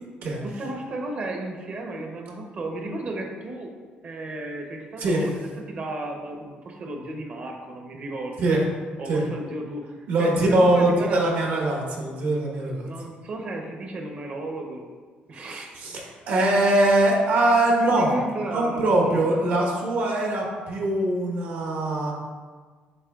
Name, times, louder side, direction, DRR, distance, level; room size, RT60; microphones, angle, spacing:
voice 1, 0.4-3.7 4.0-8.4 9.0-11.3 12.8-14.8 15.3-16.2 17.8-19.3, right 2 dB, 45° right, 2 dB, 0.7 m, -34 dB
voice 2, 10.1-12.9 15.5-16.0 16.3-18.1 18.5-22.1, right 1 dB, 75° right, -1 dB, 1.0 m, -22 dB
7.5 x 3.1 x 2.3 m, 1.5 s
cardioid pair, 125°, 3 cm